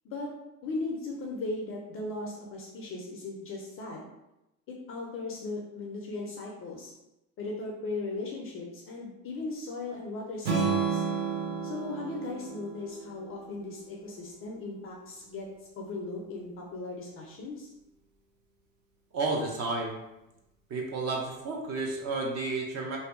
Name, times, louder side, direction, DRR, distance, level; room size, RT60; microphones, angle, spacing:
voice 1, 0.6-4.0 4.7-6.9 7.4-11.0 11.6-15.5 15.8-17.7, left 3 dB, 30° left, -1 dB, 0.4 m, -37 dB
Strum, 10.4-14.6, right 5 dB, 55° right, 0.8 m, -32 dB
voice 2, 19.1-20.0 20.7-23.0, right 3 dB, 35° right, -1 dB, 0.5 m, -31 dB
2.6 x 2.2 x 2.5 m, 0.91 s
hypercardioid pair, 90°, 49 cm